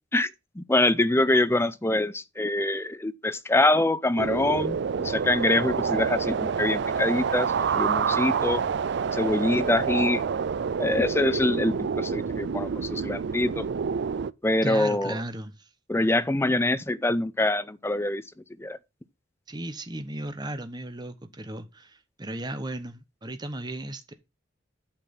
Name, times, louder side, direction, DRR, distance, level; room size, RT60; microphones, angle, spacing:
voice 1, 0.6-8.6 9.1-10.2 10.8-13.7 14.4-15.1 15.9-18.2 18.6-18.8, left 2 dB, 15° left, 0.5 m, -25 dB
Wind (Artificial), 4.2-14.3, right 6 dB, 60° right, 0.4 m, -28 dB
voice 2, 14.6-15.7 19.5-24.1, right 1 dB, 20° right, 1.1 m, -35 dB
8.7 x 6.0 x 5.9 m
head